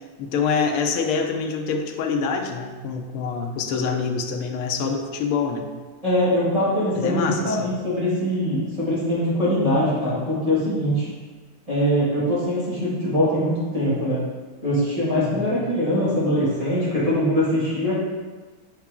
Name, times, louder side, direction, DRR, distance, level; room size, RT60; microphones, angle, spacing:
voice 1, 0.0-5.7 6.9-7.7 15.2-15.6, left 5 dB, 80° left, 3 dB, 1.6 m, -26 dB
voice 2, 6.0-11.1 11.7-14.2 14.6-18.0, equal, 15° right, -11 dB, 2.0 m, -22 dB
7.4 x 4.7 x 3.6 m, 1.4 s
omnidirectional pair, 2.3 m